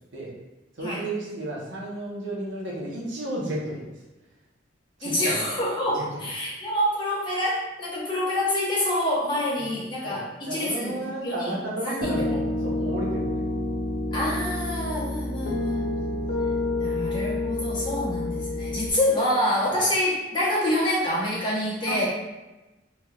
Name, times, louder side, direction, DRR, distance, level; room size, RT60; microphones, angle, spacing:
voice 1, 0.8-3.9 5.0-5.6 5.9-6.1 9.6-9.8 10.0-13.7 15.8-16.2 21.9-22.0, right 1 dB, 75° right, -4 dB, 0.9 m, -33 dB
voice 2, 5.0-11.6 11.8-12.4 14.1-16.0 16.8-22.0, left 1 dB, 25° left, -7 dB, 1.0 m, -27 dB
Piano, 12.0-18.9, left 2 dB, 75° left, 0.5 m, -28 dB
3.3 x 3.0 x 2.4 m, 1.1 s
head